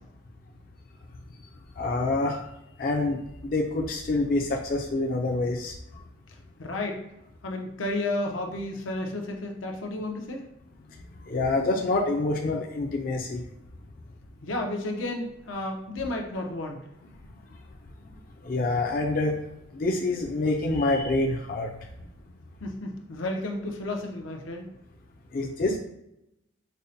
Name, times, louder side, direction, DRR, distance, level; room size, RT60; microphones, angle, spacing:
voice 1, 1.8-2.5 2.8-5.7 11.3-13.4 18.4-19.4 19.7-21.7 25.3-25.8, left 2 dB, 45° left, 0 dB, 0.4 m, -26 dB
voice 2, 6.6-7.0 7.4-10.4 14.4-16.8 22.6-24.7, left 2 dB, 85° left, 2 dB, 0.6 m, -32 dB
5.3 x 2.1 x 2.7 m, 0.85 s
head